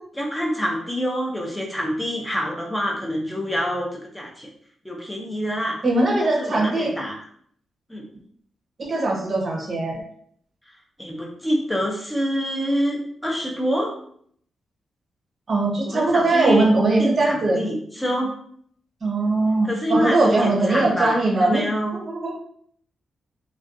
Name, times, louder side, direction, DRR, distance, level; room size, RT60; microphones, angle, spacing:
voice 1, 0.1-4.5 4.8-5.8 6.4-7.2 7.9-8.0 11.0-13.9 15.9-16.7 17.0-18.3 19.6-22.0, equal, 5° left, -1 dB, 0.4 m, -26 dB
voice 2, 5.8-6.9 8.8-10.0 15.5-17.6 19.0-21.6 21.9-22.3, right 2 dB, 40° right, -1 dB, 0.7 m, -20 dB
2.4 x 2.2 x 2.5 m, 0.63 s
wide cardioid pair, 135°, 0 cm